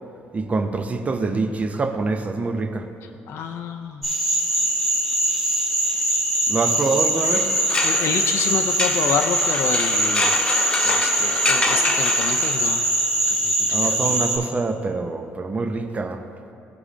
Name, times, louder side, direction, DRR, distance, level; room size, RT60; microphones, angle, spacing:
voice 1, 0.3-2.9 6.5-7.5 13.7-16.2, right 3 dB, 30° right, 7 dB, 0.6 m, -25 dB
voice 2, 3.3-4.0 7.8-10.3 10.8-12.9 13.3-14.1, left 7 dB, 60° left, 4 dB, 0.4 m, -28 dB
sound 1, 4.0-14.4, right 1 dB, ahead, 1.6 m, -22 dB
sound 2, 7.2-12.9, left 2 dB, 20° left, 0.7 m, -27 dB
13.5 x 4.9 x 2.5 m, 2.6 s
supercardioid pair, 70°, 5 cm